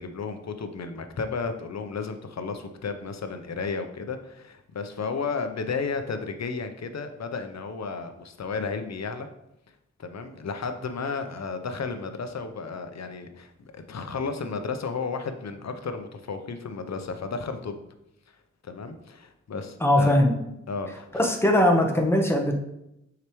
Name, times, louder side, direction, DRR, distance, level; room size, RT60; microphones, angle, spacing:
voice 1, 0.0-9.3 10.0-17.8 18.6-20.2 20.7-21.1, left 4 dB, 65° left, 8 dB, 0.7 m, -33 dB
voice 2, 19.8-20.3 21.1-22.5, left 1 dB, 10° left, 2 dB, 1.1 m, -20 dB
6.4 x 4.9 x 3.1 m, 0.85 s
cardioid pair, 60°, 30 cm